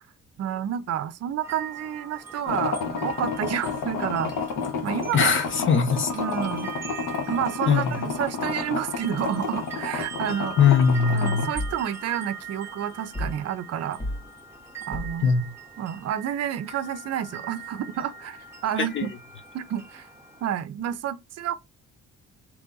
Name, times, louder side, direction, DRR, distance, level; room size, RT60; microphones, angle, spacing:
voice 1, 0.4-4.3 4.8-5.4 6.2-6.7 7.3-10.6 11.1-14.0 14.9-15.3 15.8-19.1 19.5-20.1 20.4-21.5, right 10 dB, 55° right, 0.5 m, -30 dB
sound 1, 1.4-20.5, right 5 dB, 10° right, 0.9 m, -41 dB
sound 2, 2.5-11.4, left 5 dB, 80° left, 1.1 m, -31 dB
voice 2, 5.1-6.1 7.7-8.1 10.6-11.5 15.2-15.5 18.8-19.1, left 6 dB, 40° left, 1.0 m, -21 dB
sound 3, 11.5-11.9 13.1-13.5 14.0-14.3 14.9-15.3, left 1 dB, 20° left, 0.7 m, -32 dB
3.1 x 2.5 x 3.8 m
cardioid pair, 85°, 30 cm